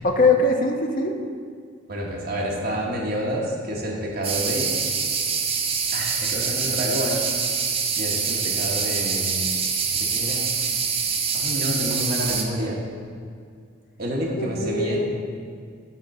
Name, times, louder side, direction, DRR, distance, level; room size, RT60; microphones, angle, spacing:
voice 1, 0.0-1.1 14.4-15.0, left 2 dB, 45° left, 3 dB, 0.6 m, -21 dB
voice 2, 1.9-4.8 5.9-7.2 8.0-9.5 9.9-10.5 11.3-12.8 14.0-15.0, equal, 55° right, -3 dB, 1.2 m, -28 dB
sound 1, 4.2-12.4, right 6 dB, 30° right, 0.5 m, -25 dB
7.2 x 3.9 x 5.3 m, 2.1 s
head